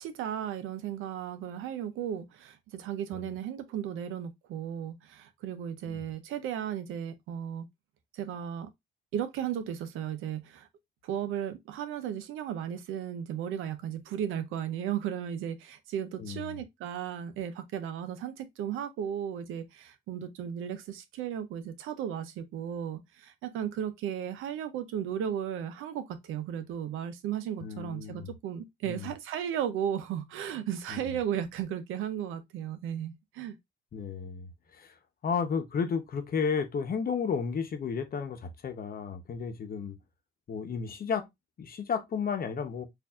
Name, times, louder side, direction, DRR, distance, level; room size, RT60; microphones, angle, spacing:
voice 1, 0.0-7.7 8.1-8.7 9.1-10.7 11.0-33.6, right 9 dB, 90° right, 0.7 m, -35 dB
voice 2, 16.2-16.6 27.6-28.3 28.8-29.1 30.9-31.2 33.9-35.0 35.2-40.0 40.5-41.3 41.6-42.9, left 6 dB, 50° left, 0.9 m, -33 dB
4.4 x 2.6 x 2.4 m
cardioid pair, 90°, 20 cm